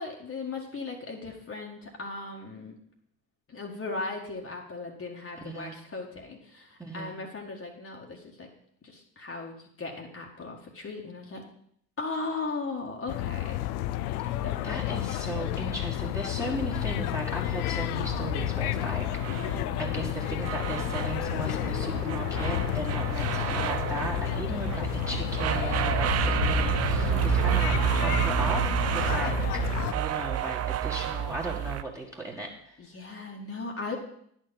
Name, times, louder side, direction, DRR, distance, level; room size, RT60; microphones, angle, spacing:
voice 1, 0.0-2.7 3.5-8.5 8.8-11.4 12.0-13.6 14.4-14.5 32.8-34.0, left 3 dB, 30° left, 0 dB, 1.8 m, -37 dB
voice 2, 5.4-5.8 6.8-7.2 14.4-28.7 28.9-29.6 29.9-32.8, right 1 dB, 5° right, -3 dB, 1.9 m, -37 dB
sound 1, 13.1-29.9, left 15 dB, 75° left, 0.6 m, -31 dB
sound 2, 16.5-31.8, right 10 dB, 35° right, 0.6 m, -30 dB
10.0 x 4.5 x 7.1 m, 0.69 s
hypercardioid pair, 60°, 45 cm